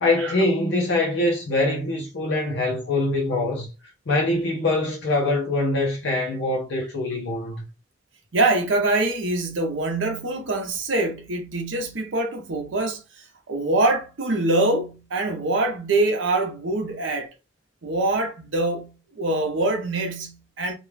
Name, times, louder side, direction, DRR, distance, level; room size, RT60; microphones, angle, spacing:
voice 1, 0.0-3.7 4.1-7.6, left 2 dB, 65° left, 0.6 m, -23 dB
voice 2, 8.3-17.3 17.8-20.7, right 2 dB, 70° right, 0.7 m, -24 dB
2.4 x 2.2 x 3.1 m
head